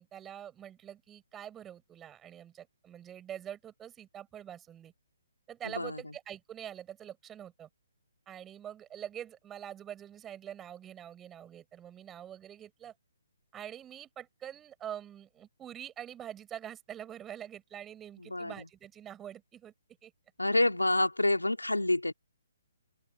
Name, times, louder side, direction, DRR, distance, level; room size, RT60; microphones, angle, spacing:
voice 1, 0.0-4.9 5.5-7.7 8.3-12.9 13.5-19.7 20.0-20.1, right 10 dB, 15° right, 6.9 m, -45 dB
voice 2, 5.6-6.0 18.2-18.5 20.4-22.1, left 1 dB, 85° left, 2.9 m, -28 dB
open air
figure-of-eight pair, 135°, 0 cm